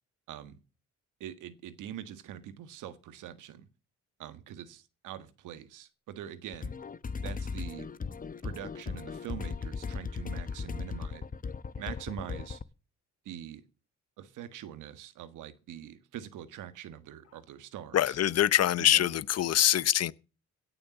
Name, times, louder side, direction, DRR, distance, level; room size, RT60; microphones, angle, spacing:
voice 1, 0.3-0.6 1.2-3.7 4.2-6.7 7.2-7.9 8.4-11.2 11.8-12.6 13.2-13.6 14.2-18.2 18.8-19.1, right 10 dB, 85° right, 1.6 m, -43 dB
sound 1, 6.5-12.6, left 5 dB, 30° left, 0.8 m, -37 dB
voice 2, 17.9-20.1, left 11 dB, 55° left, 0.8 m, -24 dB
17.0 x 6.9 x 7.0 m
cardioid pair, 90°, 30 cm